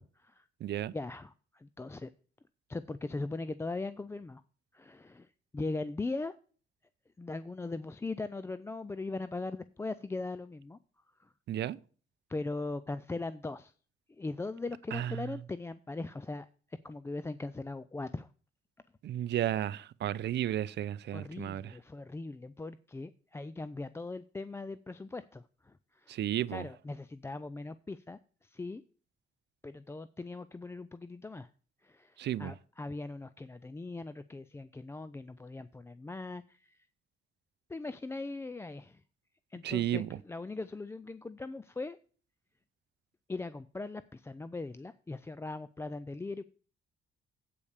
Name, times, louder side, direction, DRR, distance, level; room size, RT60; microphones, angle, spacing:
voice 1, 0.0-0.5 0.9-2.1 2.7-4.4 4.7-6.4 7.2-10.8 11.2-11.3 12.3-13.7 14.1-18.3 21.1-26.2 26.5-28.8 29.6-31.5 31.8-36.9 37.7-39.0 39.5-42.0 43.3-46.4, left 3 dB, 15° left, 0.4 m, -40 dB
voice 2, 0.6-0.9 11.5-11.8 14.9-15.3 19.0-21.7 26.1-26.7 32.2-32.5 39.6-40.2, right 12 dB, 60° right, 0.5 m, -33 dB
8.5 x 5.3 x 6.5 m
cardioid pair, 90°, 20 cm